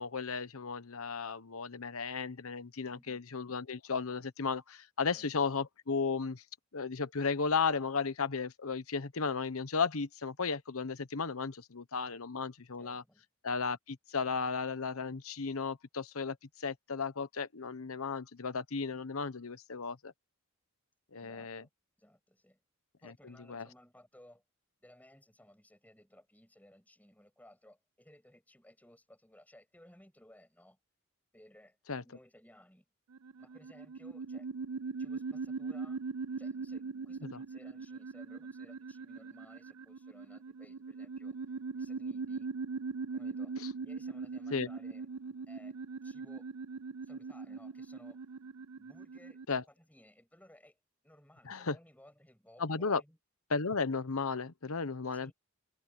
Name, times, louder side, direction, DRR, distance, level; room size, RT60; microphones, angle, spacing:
voice 1, 0.0-6.4 6.7-13.0 13.4-20.1 21.1-21.6 23.0-23.7 31.9-32.0 43.6-43.7 44.5-44.7 49.5-49.6 51.5-51.8 52.6-53.0 53.5-55.3, left 5 dB, 75° left, 1.0 m, -35 dB
voice 2, 2.9-3.2 5.1-5.3 12.8-13.2 21.1-21.7 22.0-22.6 23.0-24.4 24.8-30.8 31.3-31.8 32.0-32.8 33.4-34.5 35.0-36.0 36.4-41.4 41.7-42.5 43.1-45.1 45.5-46.5 47.0-48.2 48.8-50.8 51.0-53.2 55.1-55.3, left 1 dB, 5° left, 6.9 m, -60 dB
sound 1, 33.1-49.5, right 4 dB, 85° right, 0.5 m, -41 dB
head